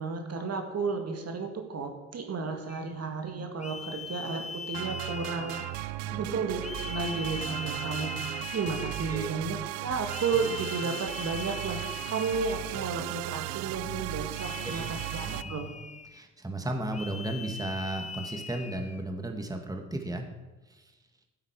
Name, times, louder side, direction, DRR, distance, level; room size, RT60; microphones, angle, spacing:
voice 1, 0.0-5.7 6.2-15.7, right 4 dB, 40° right, 4 dB, 2.0 m, -33 dB
sound 1, 2.7-2.9 3.6-6.0 6.6-9.4 10.1-12.9 14.3-16.2 16.9-19.0, left 4 dB, 20° left, 0.9 m, -41 dB
sound 2, 4.7-15.4, right 18 dB, 65° right, 0.6 m, -36 dB
voice 2, 6.0-6.4 9.1-9.3 14.6-14.9 15.2-15.7 16.1-20.3 20.7-20.9, right 1 dB, 10° right, 4 dB, 2.0 m, -35 dB
14.5 x 8.4 x 4.9 m, 1.2 s
figure-of-eight pair, 50°, 38 cm